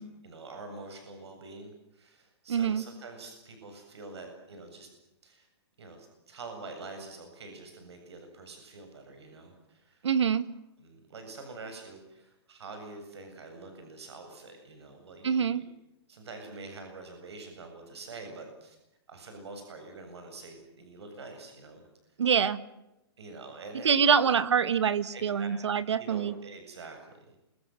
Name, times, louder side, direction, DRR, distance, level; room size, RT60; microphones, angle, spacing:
voice 1, 0.0-4.9 5.2-5.5 5.8-10.1 10.8-15.6 16.1-18.8 19.1-21.8 22.1-22.2 23.2-24.3 25.1-25.5 26.0-27.3, right 3 dB, 75° right, 5 dB, 7.7 m, -46 dB
voice 2, 2.5-2.8 10.0-10.5 15.2-15.6 22.2-22.6 23.8-26.3, right 7 dB, 90° right, 14 dB, 1.9 m, -25 dB
28.0 x 22.5 x 7.9 m, 0.90 s
hypercardioid pair, 180°, 14 cm